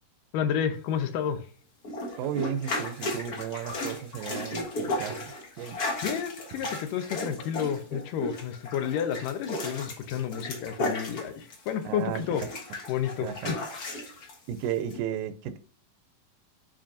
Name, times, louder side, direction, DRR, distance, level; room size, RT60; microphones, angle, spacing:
voice 1, 0.3-1.4 6.0-12.4 12.9-13.6, left 8 dB, 75° left, 2.4 m, -30 dB
sound 1, 1.8-11.8 12.1-14.3 14.9-15.0, left 1 dB, 60° left, 1.0 m, -35 dB
voice 2, 2.2-5.8 11.8-12.5 13.2-13.5 14.5-15.6, right 9 dB, 80° right, 2.2 m, -34 dB
8.8 x 4.3 x 2.6 m
omnidirectional pair, 4.0 m